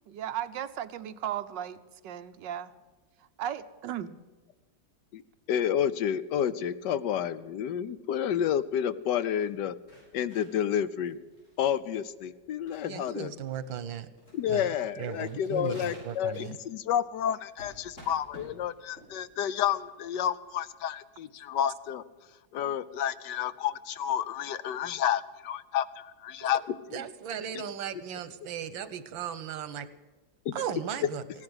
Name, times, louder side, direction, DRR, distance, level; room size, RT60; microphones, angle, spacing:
voice 1, 0.1-2.7 3.4-4.1, right 10 dB, 75° right, 11 dB, 1.4 m, -36 dB
voice 2, 5.5-9.7 10.1-11.2 11.6-13.3 14.3-22.0 22.5-27.0, left 9 dB, 70° left, 15 dB, 1.2 m, -30 dB
sound 1, 9.0-20.7, equal, 40° left, 6.9 m, -53 dB
voice 3, 12.8-14.1 14.5-16.6 26.9-29.9 30.5-31.2, right 8 dB, 90° right, 14 dB, 1.7 m, -37 dB
16.5 x 10.5 x 8.0 m, 1.3 s
omnidirectional pair, 2.0 m